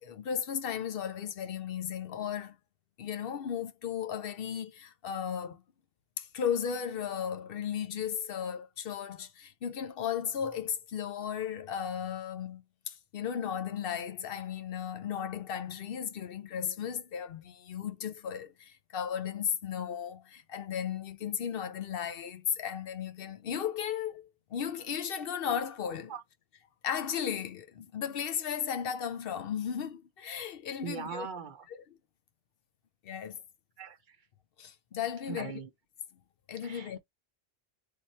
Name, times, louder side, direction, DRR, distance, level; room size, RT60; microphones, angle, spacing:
voice 1, 0.0-2.6 3.0-5.6 6.2-26.1 26.8-31.3 31.7-31.8 33.0-33.4 34.6-35.5 36.5-37.0, left 8 dB, 65° left, 0.8 m, -35 dB
voice 2, 30.8-31.7 33.8-34.2 35.3-35.7 36.6-37.0, right 6 dB, 55° right, 0.7 m, -40 dB
3.4 x 3.0 x 4.1 m
omnidirectional pair, 1.1 m